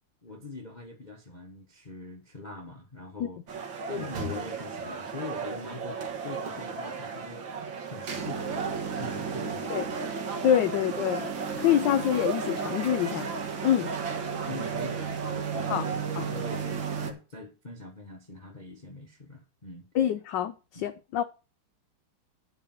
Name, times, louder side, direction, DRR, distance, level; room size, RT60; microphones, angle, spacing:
voice 1, 0.2-3.4 3.9-7.5 7.8-10.1 10.7-10.8 11.5-11.7 14.5-19.8 20.7-20.8, left 3 dB, 30° left, 0.9 m, -43 dB
sound 1, 3.5-17.1, right 5 dB, 65° right, 2.2 m, -33 dB
voice 2, 10.4-11.3 11.6-13.3 13.6-13.9 15.7-15.8 16.2-16.3 19.9-21.2, left 10 dB, 70° left, 1.1 m, -26 dB
11.0 x 4.9 x 7.3 m
omnidirectional pair, 2.3 m